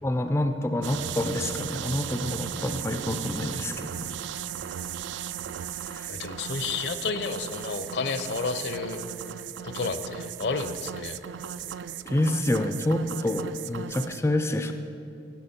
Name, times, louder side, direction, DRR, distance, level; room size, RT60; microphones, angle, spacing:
voice 1, 0.0-4.1 5.7-6.1 12.1-14.7, left 1 dB, 15° left, 6 dB, 0.3 m, -28 dB
sound 1, 0.8-14.2, right 9 dB, 75° right, 0.3 m, -36 dB
voice 2, 6.1-9.0 9.6-11.2, left 4 dB, 65° left, 10 dB, 0.6 m, -31 dB
17.5 x 6.0 x 4.3 m, 2.8 s
head